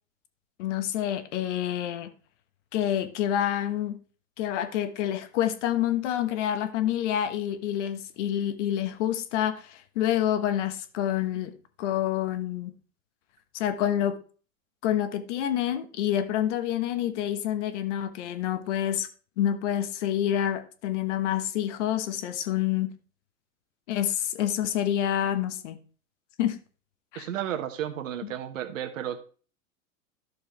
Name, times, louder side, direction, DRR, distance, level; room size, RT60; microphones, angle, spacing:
voice 1, 0.6-2.1 2.7-4.0 4.4-11.5 11.8-12.7 13.5-14.2 14.8-19.1 19.4-22.9 23.9-25.8 26.4-26.6 27.1-27.3 28.2-28.3, left 11 dB, 60° left, 1.2 m, -28 dB
voice 2, 27.1-29.2, right 10 dB, 70° right, 1.4 m, -33 dB
12.0 x 6.7 x 3.2 m
hypercardioid pair, 95°, 40 cm